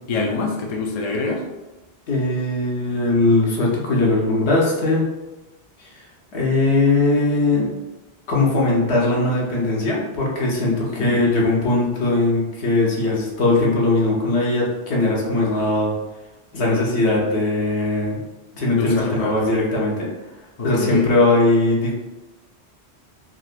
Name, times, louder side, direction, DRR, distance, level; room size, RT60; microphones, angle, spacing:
voice 1, 0.1-1.4 11.0-11.2 18.7-19.5 20.6-21.1, left 3 dB, 50° left, 0 dB, 0.4 m, -25 dB
voice 2, 2.1-5.1 5.8-5.9 6.3-7.7 8.3-15.9 16.5-18.2 18.5-20.1 20.6-21.9, left 2 dB, 75° left, -3 dB, 1.1 m, -20 dB
4.0 x 2.1 x 2.5 m, 1.1 s
omnidirectional pair, 1.1 m